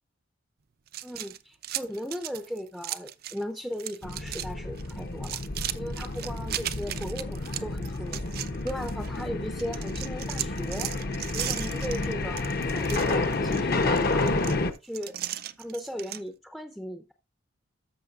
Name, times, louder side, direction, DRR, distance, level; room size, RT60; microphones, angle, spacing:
sound 1, 0.9-3.4 3.7-4.5 4.8-9.2 9.6-16.2, right 12 dB, 50° right, 0.5 m, -37 dB
voice 1, 1.0-5.4 5.7-8.3 8.6-10.9 11.3-12.4 12.7-14.5 14.8-15.2 15.6-17.1, equal, ahead, 0.6 m, -37 dB
sound 2, 4.0-14.7, left 2 dB, 45° left, 0.8 m, -30 dB
13.5 x 6.0 x 2.4 m
head